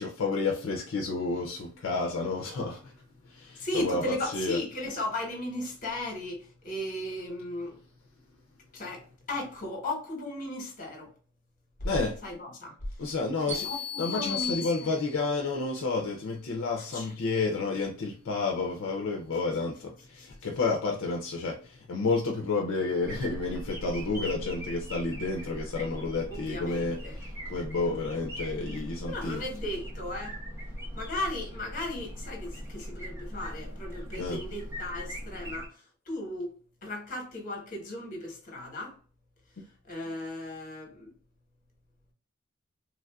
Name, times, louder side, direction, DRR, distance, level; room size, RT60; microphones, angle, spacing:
voice 1, 0.0-3.0 3.2-4.6 11.8-12.2 13.0-13.7 14.0-29.4 34.1-34.4, left 3 dB, 65° left, 0.5 m, -30 dB
voice 2, 3.6-7.8 8.7-11.1 12.2-12.7 13.5-15.0 16.9-17.1 20.2-20.3 26.3-27.2 27.8-28.0 29.1-30.4 30.9-35.7 36.1-36.5 36.8-39.0 39.9-41.1, left 1 dB, 40° left, 1.0 m, -36 dB
sound 1, 13.5-15.4, left 7 dB, 35° right, 1.2 m, -36 dB
sound 2, 23.0-35.7, equal, 15° right, 0.8 m, -40 dB
3.1 x 2.5 x 2.2 m
head